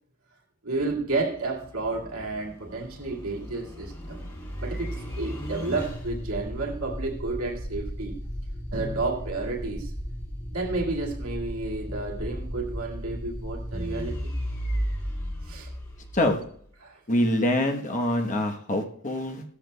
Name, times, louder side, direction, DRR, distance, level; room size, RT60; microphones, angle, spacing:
voice 1, 0.6-4.2 4.6-8.2 8.7-9.9 10.5-14.3 15.4-15.7 16.8-17.0, right 3 dB, 90° right, -1 dB, 2.2 m, -31 dB
sound 1, 0.8-16.7, equal, 20° left, 2.7 m, -35 dB
voice 2, 17.1-19.4, left 1 dB, 35° left, 4 dB, 1.1 m, -25 dB
16.5 x 13.0 x 2.3 m, 0.62 s
head